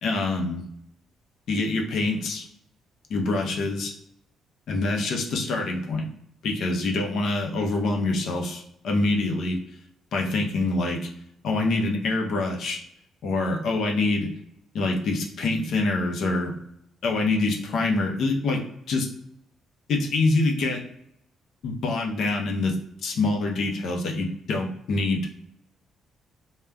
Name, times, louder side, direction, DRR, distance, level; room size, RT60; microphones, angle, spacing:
voice 1, 0.0-0.6 1.5-2.5 3.1-3.9 4.7-6.1 6.4-9.6 10.1-11.0 11.4-12.8 13.2-14.3 14.7-16.6 17.0-18.6 18.9-19.1 19.9-20.8 21.6-22.8 23.0-25.3, left 2 dB, 70° left, 2 dB, 0.5 m, -25 dB
3.4 x 2.1 x 2.2 m, 0.72 s
cardioid pair, 90°, 0 cm